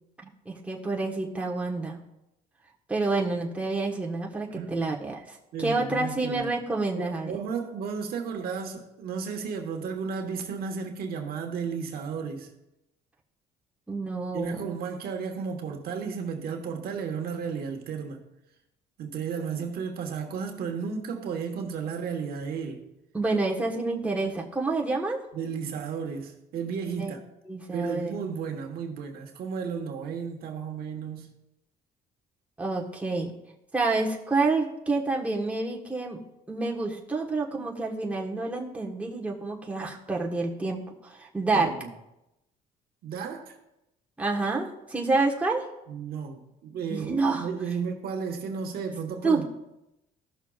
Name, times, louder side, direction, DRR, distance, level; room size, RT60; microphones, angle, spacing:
voice 1, 0.2-2.0 2.9-7.4 13.9-14.7 23.1-25.2 26.9-27.1 27.5-28.1 32.6-33.3 33.7-36.2 36.5-41.7 44.2-45.6 46.9-47.5 49.2-49.5, right 3 dB, 10° right, 1.2 m, -28 dB
voice 2, 5.5-6.5 7.0-12.5 14.3-18.2 19.0-22.9 25.3-27.2 27.7-31.3 41.5-41.9 43.0-43.6 45.9-49.5, right 6 dB, 65° right, 1.3 m, -33 dB
15.0 x 6.2 x 2.4 m
cardioid pair, 110°, 17 cm